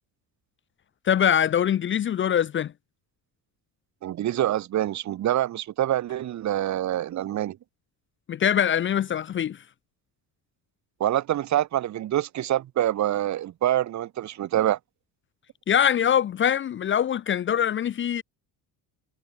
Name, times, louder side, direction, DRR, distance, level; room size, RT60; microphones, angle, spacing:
voice 1, 1.0-2.7 8.3-9.6 15.7-18.2, left 9 dB, 30° left, 0.7 m, -23 dB
voice 2, 4.0-7.6 11.0-14.8, right 12 dB, 45° right, 2.0 m, -26 dB
cardioid pair, 175°, 38 cm